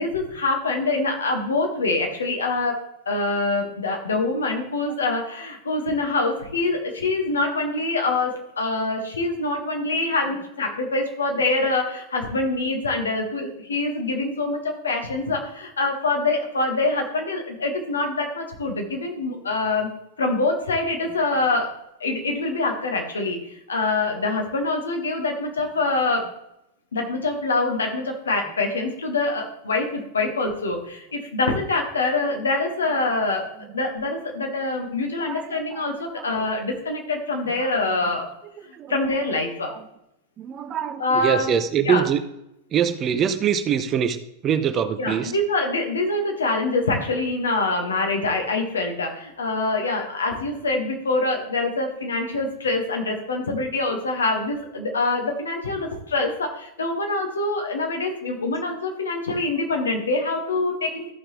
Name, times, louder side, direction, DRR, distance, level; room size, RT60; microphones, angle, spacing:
voice 1, 0.0-19.9 20.2-21.7 22.0-23.4 23.7-26.3 26.9-38.3 38.9-39.7 41.0-41.5 41.8-42.0 45.0-61.1, left 2 dB, 70° left, 2 dB, 1.7 m, -25 dB
voice 2, 35.1-36.3 37.5-38.1 38.6-39.1 39.7-39.9 40.4-42.2 42.7-45.3, right 8 dB, 30° right, 10 dB, 0.7 m, -25 dB
14.0 x 5.9 x 3.2 m, 0.83 s
figure-of-eight pair, 90°, 0 cm